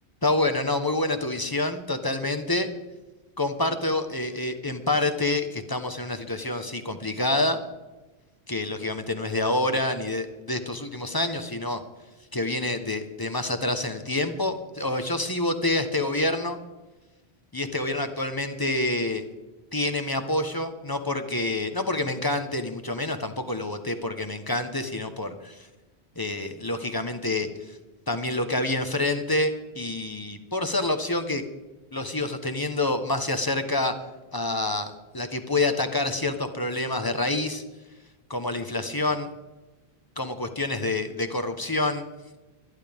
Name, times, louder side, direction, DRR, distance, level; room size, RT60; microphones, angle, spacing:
voice 1, 0.2-2.7 3.4-7.6 8.5-11.8 12.3-16.6 17.5-19.2 19.7-25.7 26.2-27.8 28.1-31.4 31.9-33.9 34.3-37.6 38.3-39.3 40.2-42.0, left 2 dB, 20° left, 7 dB, 1.1 m, -27 dB
25.0 x 11.5 x 3.6 m, 1.1 s
omnidirectional pair, 1.1 m